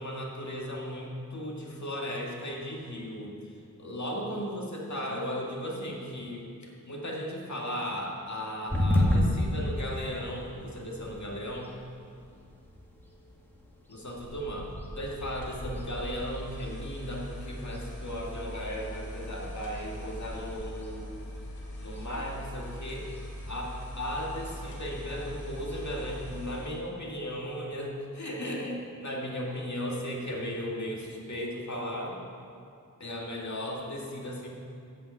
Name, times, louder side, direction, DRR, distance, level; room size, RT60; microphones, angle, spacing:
voice 1, 0.0-11.7 13.9-21.1 21.8-23.1 23.5-32.2 33.0-34.5, equal, 50° left, -2 dB, 2.1 m, -36 dB
sound 1, 8.7-26.6, left 1 dB, 5° left, 2.0 m, -35 dB
sound 2, 15.3-26.9, equal, 85° left, 3.3 m, -41 dB
14.0 x 5.6 x 8.4 m, 2.4 s
wide cardioid pair, 95°, 36 cm